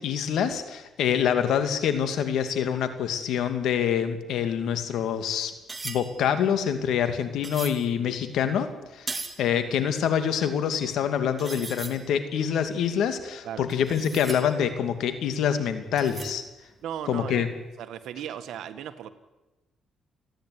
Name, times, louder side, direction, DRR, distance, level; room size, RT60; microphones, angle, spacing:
voice 1, 0.0-5.5 5.8-8.7 8.9-16.4 17.1-17.5, left 8 dB, 80° left, 9 dB, 2.5 m, -26 dB
sound 1, 5.5-7.9 8.5-9.5 9.8-9.9 10.6-10.7 10.8-11.0 11.4-12.1 12.7-15.1 16.0-16.6 16.9-17.2, right 3 dB, 25° right, 2.5 m, -39 dB
voice 2, 16.8-17.4 17.8-19.1, right 10 dB, 80° right, 9 dB, 1.7 m, -36 dB
28.5 x 10.5 x 9.8 m, 1.0 s
cardioid pair, 90°, 0 cm